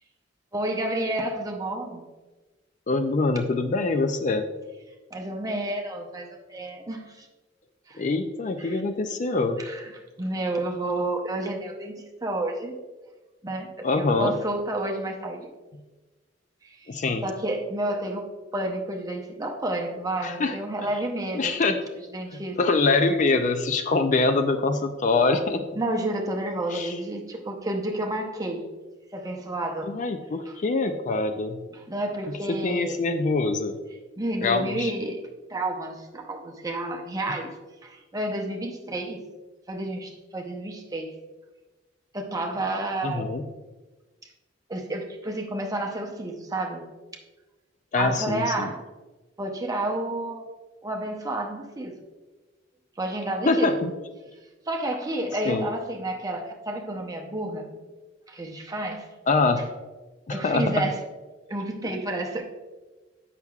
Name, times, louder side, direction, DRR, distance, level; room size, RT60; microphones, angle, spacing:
voice 1, 0.5-2.0 5.1-7.3 7.9-8.0 8.6-8.8 9.3-12.7 13.4-15.5 16.6-16.9 17.2-21.8 22.1-22.8 25.8-28.7 29.1-29.9 30.5-30.6 31.7-33.0 34.2-35.2 35.5-37.6 37.8-39.2 39.7-41.1 42.1-43.4 44.7-46.9 48.0-48.8 49.4-50.5 50.8-52.0 53.0-53.8 54.7-57.7 58.3-59.1 60.3-61.0 61.5-62.4, right 1 dB, 20° right, 2 dB, 0.7 m, -30 dB
voice 2, 2.9-4.4 8.0-9.6 13.8-14.3 16.9-17.2 20.2-20.6 21.3-21.8 22.6-25.6 26.7-27.0 29.9-31.6 32.5-33.8 34.4-34.9 37.3-37.4 43.0-43.4 47.9-48.7 53.5-53.9 55.5-55.7 59.3-59.6 60.3-60.9, left 3 dB, 40° left, 8 dB, 0.4 m, -24 dB
8.0 x 5.8 x 2.3 m, 1.2 s
head